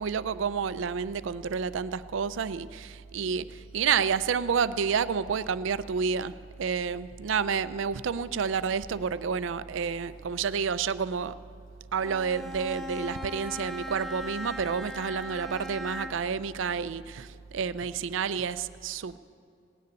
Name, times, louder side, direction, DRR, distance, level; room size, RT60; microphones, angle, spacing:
voice 1, 0.0-11.3 11.9-19.2, right 6 dB, 80° right, 15 dB, 0.4 m, -29 dB
Bowed string instrument, 12.0-16.4, equal, ahead, 0.5 m, -39 dB
17.0 x 6.7 x 9.3 m, 2.4 s
head